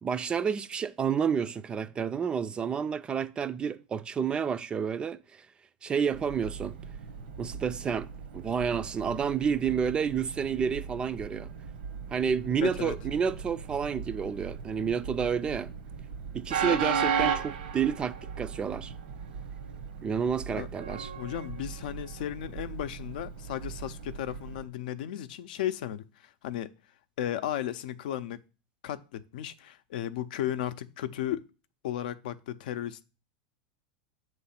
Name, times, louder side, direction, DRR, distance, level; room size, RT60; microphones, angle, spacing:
voice 1, 0.0-5.5 5.8-6.8 7.4-8.1 8.3-11.5 12.1-15.7 16.3-18.9 20.0-21.1, right 7 dB, 20° right, 0.3 m, -30 dB
Train, 6.1-24.7, right 7 dB, 85° right, 1.0 m, -36 dB
voice 2, 12.6-12.9 20.5-20.7 21.2-26.7 27.2-28.4 28.8-31.4 31.8-33.0, left 11 dB, 75° left, 0.5 m, -35 dB
7.4 x 3.2 x 5.6 m
supercardioid pair, 135°, 5 cm